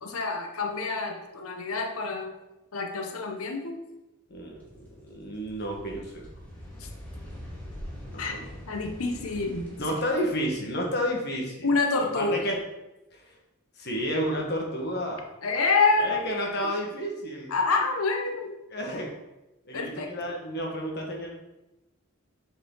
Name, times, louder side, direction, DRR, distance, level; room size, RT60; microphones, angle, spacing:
voice 1, 0.0-2.3 2.7-3.8 8.2-8.3 8.7-9.8 11.6-12.4 15.4-16.7 17.5-18.5 19.7-20.1, left 3 dB, 90° left, 4 dB, 0.8 m, -27 dB
voice 2, 4.3-6.1 8.0-8.5 9.8-11.7 12.1-12.6 13.1-13.2 13.8-15.2 16.0-17.5 18.7-19.1 19.6-21.3, equal, 50° left, -1 dB, 1.5 m, -31 dB
sound 1, 4.5-9.8, equal, 5° left, 1.9 m, -43 dB
7.4 x 4.8 x 3.9 m, 0.97 s
head